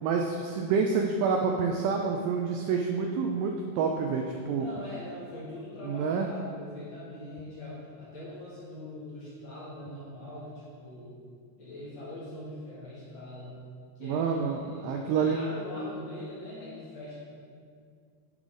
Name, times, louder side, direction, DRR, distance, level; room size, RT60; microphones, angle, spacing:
voice 1, 0.0-4.7 5.8-6.3 14.0-15.5, right 5 dB, 85° right, 2 dB, 2.0 m, -28 dB
voice 2, 4.6-11.2 11.6-13.6 14.0-17.1, left 1 dB, 55° left, -9 dB, 2.1 m, -42 dB
9.4 x 3.9 x 5.0 m, 2.2 s
omnidirectional pair, 4.5 m